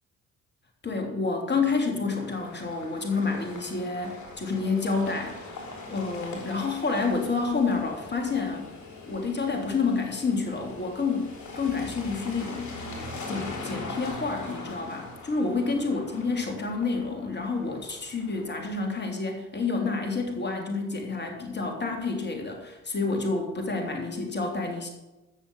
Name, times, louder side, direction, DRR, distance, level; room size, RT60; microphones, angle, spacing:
voice 1, 0.8-5.4 5.9-8.7 9.0-12.8 13.3-24.9, left 4 dB, 25° left, 3 dB, 3.2 m, -29 dB
sound 1, 2.1-19.1, left 3 dB, 50° left, 3.5 m, -42 dB
16.5 x 6.6 x 6.9 m, 1.1 s
figure-of-eight pair, 45°, 38 cm